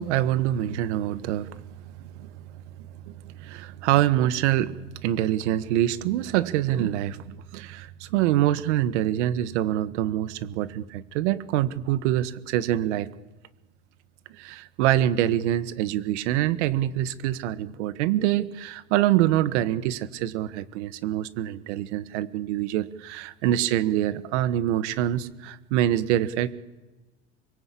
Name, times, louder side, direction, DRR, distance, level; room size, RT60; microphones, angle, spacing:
voice 1, 0.0-1.6 2.0-2.3 3.0-13.1 14.4-26.5, right 12 dB, 75° right, 14 dB, 1.6 m, -25 dB
25.5 x 22.5 x 8.6 m, 1.1 s
supercardioid pair, 160°, 35 cm